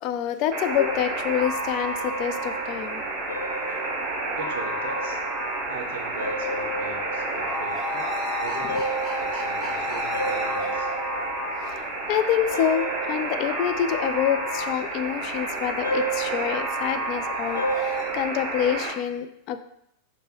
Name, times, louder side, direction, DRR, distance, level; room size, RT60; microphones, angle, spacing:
voice 1, 0.0-3.0 8.6-8.7 11.7-11.8 12.1-19.6, left 10 dB, 40° left, 10 dB, 0.3 m, -27 dB
Alarm, 0.5-18.9, right 2 dB, 30° right, 1.0 m, -30 dB
sound 1, 0.6-18.8, right 3 dB, 75° left, 0.6 m, -34 dB
voice 2, 4.4-5.2 5.7-8.1 8.4-8.9 9.2-10.9, right 5 dB, 55° right, 4 dB, 0.5 m, -40 dB
sound 2, 6.1-12.4 15.8-18.0, left 2 dB, 10° left, 1.6 m, -35 dB
5.2 x 2.1 x 4.3 m, 0.77 s
figure-of-eight pair, 90°, 0 cm